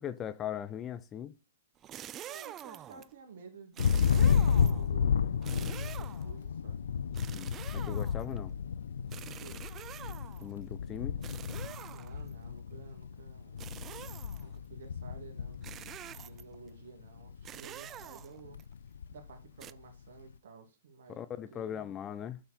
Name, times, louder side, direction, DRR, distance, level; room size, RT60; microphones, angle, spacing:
voice 1, 0.0-1.3 7.3-8.5 10.4-11.2 21.1-22.4, left 9 dB, 25° left, 0.7 m, -39 dB
sound 1, 1.8-3.1 3.7-4.9 5.4-6.4 7.1-8.4 9.1-10.5 11.2-12.3 13.6-14.5 15.6-16.6 17.4-18.6 19.6-19.7, right 11 dB, 25° right, 0.4 m, -46 dB
voice 2, 2.2-6.8 9.2-9.6 11.9-13.7 14.4-18.6 19.1-21.9, right 5 dB, 65° right, 2.5 m, -52 dB
Thunder, 3.8-16.7 17.0-17.6 17.9-19.4, left 7 dB, 80° left, 0.5 m, -32 dB
9.0 x 6.8 x 4.4 m
hypercardioid pair, 120°, 0 cm